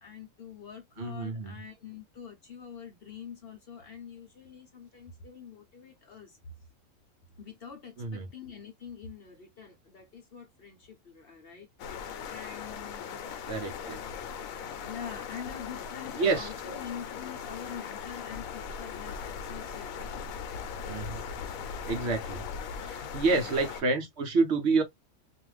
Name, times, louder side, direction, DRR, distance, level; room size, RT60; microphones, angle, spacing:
voice 1, 0.0-6.5 7.4-13.4 14.8-19.9 20.8-21.3 23.3-23.6, left 7 dB, 55° left, 0.8 m, -45 dB
voice 2, 1.0-1.5 8.0-8.3 13.5-14.0 16.2-16.5 20.9-21.2 21.9-22.4 22.8-24.8, right 3 dB, 60° right, 0.9 m, -28 dB
sound 1, 11.8-23.8, left 6 dB, 85° left, 1.0 m, -39 dB
2.5 x 2.3 x 3.1 m
omnidirectional pair, 1.4 m